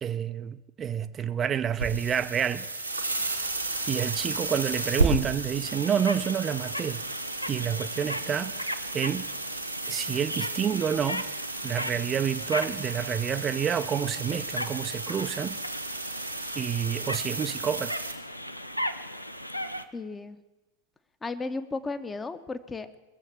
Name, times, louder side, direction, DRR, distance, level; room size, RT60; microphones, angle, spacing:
voice 1, 0.0-2.6 3.9-7.0 7.5-9.3 9.9-11.2 11.6-15.6 16.6-18.0, right 8 dB, 25° right, 0.5 m, -29 dB
sound 1, 1.7-18.1, right 2 dB, 90° right, 1.5 m, -33 dB
sound 2, 4.7-19.8, equal, 90° left, 0.6 m, -37 dB
voice 2, 19.9-20.4 21.2-23.0, left 3 dB, 15° left, 0.8 m, -34 dB
20.5 x 7.4 x 7.1 m
figure-of-eight pair, 90°, 0 cm